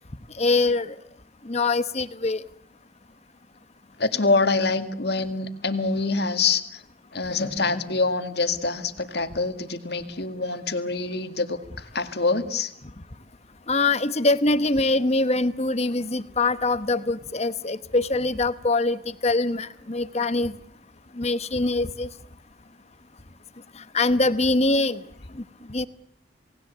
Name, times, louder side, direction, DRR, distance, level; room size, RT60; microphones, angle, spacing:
voice 1, 0.4-0.9 1.4-2.4 13.7-20.6 21.2-22.1 23.9-25.0 25.3-25.4 25.7-25.9, left 2 dB, 35° left, 13 dB, 1.1 m, -23 dB
voice 2, 4.0-6.8 7.1-12.7, left 3 dB, 55° left, 9 dB, 1.9 m, -25 dB
28.5 x 19.0 x 8.2 m, 0.74 s
head